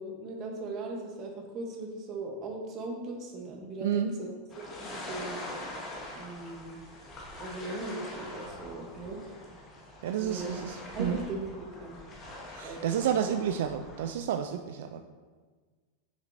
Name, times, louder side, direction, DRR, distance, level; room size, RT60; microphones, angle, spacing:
voice 1, 0.0-4.3 4.6-5.4 6.1-6.8 7.4-9.2 10.2-10.5 10.9-12.0 12.6-13.0, right 2 dB, 25° right, 1 dB, 0.9 m, -38 dB
voice 2, 3.8-4.1 10.0-11.2 12.5-15.0, right 9 dB, 65° right, 6 dB, 0.3 m, -30 dB
sound 1, 4.5-14.1, left 1 dB, 20° left, 1.0 m, -43 dB
7.3 x 6.2 x 2.6 m, 1.4 s
supercardioid pair, 175°, 0 cm